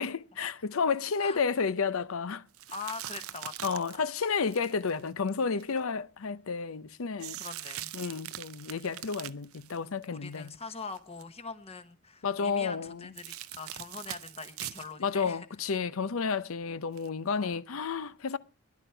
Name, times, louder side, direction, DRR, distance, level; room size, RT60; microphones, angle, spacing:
voice 1, 0.0-2.5 3.6-7.4 7.9-10.5 12.2-13.1 15.0-18.4, left 5 dB, 75° left, 0.6 m, -31 dB
sound 1, 2.5-5.8 7.2-10.5 10.8-11.2 13.2-14.9 15.3-15.4 17.0-17.1, right 13 dB, 85° right, 0.6 m, -42 dB
voice 2, 2.7-4.0 7.4-7.9 10.1-15.5 17.3-17.6, left 4 dB, 30° left, 1.1 m, -43 dB
15.0 x 11.0 x 4.5 m
head